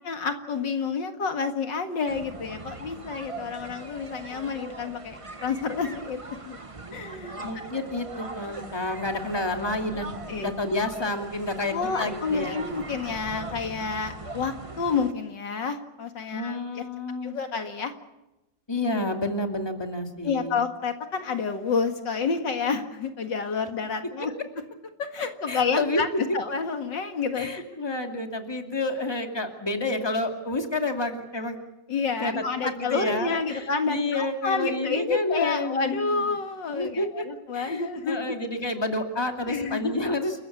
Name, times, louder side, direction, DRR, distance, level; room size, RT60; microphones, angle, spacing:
voice 1, 0.0-6.2 6.5-6.6 6.9-7.4 7.7-7.8 10.3-10.5 11.7-16.8 17.2-17.9 20.2-24.3 25.0-26.1 26.3-27.5 31.9-38.4 39.5-39.9, left 5 dB, 75° left, 6 dB, 2.5 m, -29 dB
sound 1, 2.1-15.1, right 2 dB, 20° right, 1.2 m, -40 dB
voice 2, 7.4-12.6 16.3-17.4 18.7-20.6 24.2-24.3 25.5-26.0 27.3-31.6 32.2-36.3 36.7-37.2 37.5-40.3, left 2 dB, 15° left, 4 dB, 2.5 m, -29 dB
29.5 x 15.0 x 8.5 m, 0.96 s
omnidirectional pair, 2.0 m